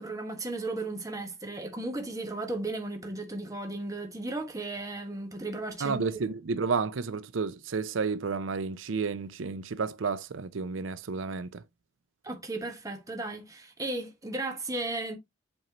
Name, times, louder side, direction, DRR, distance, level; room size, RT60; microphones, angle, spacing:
voice 1, 0.0-6.2 12.2-15.2, right 2 dB, 15° right, 1.3 m, -35 dB
voice 2, 5.8-11.6, right 5 dB, 85° right, 0.5 m, -31 dB
7.6 x 4.4 x 2.9 m
head